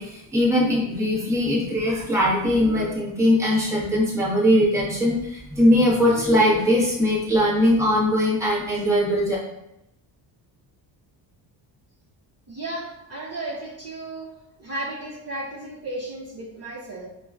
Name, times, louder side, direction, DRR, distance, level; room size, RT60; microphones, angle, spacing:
voice 1, 0.0-9.4, left 1 dB, 5° right, -7 dB, 1.2 m, -20 dB
voice 2, 12.5-14.3 14.6-17.1, right 2 dB, 30° right, -6 dB, 1.0 m, -34 dB
4.8 x 2.4 x 2.3 m, 0.85 s
cardioid pair, 105°, 47 cm